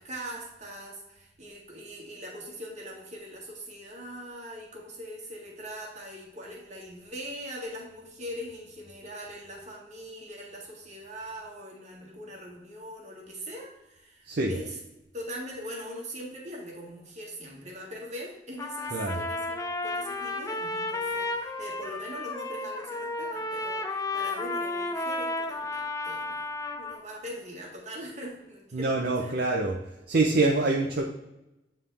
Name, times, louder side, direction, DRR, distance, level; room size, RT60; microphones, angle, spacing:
voice 1, 0.0-14.8 15.1-29.3, equal, 40° right, -2 dB, 1.6 m, -41 dB
Trumpet, 18.6-27.0, left 2 dB, 20° left, 0.5 m, -33 dB
voice 2, 18.9-19.2 28.7-29.8 30.1-31.0, right 2 dB, 60° right, 1 dB, 0.6 m, -25 dB
8.7 x 3.6 x 3.4 m, 0.92 s
head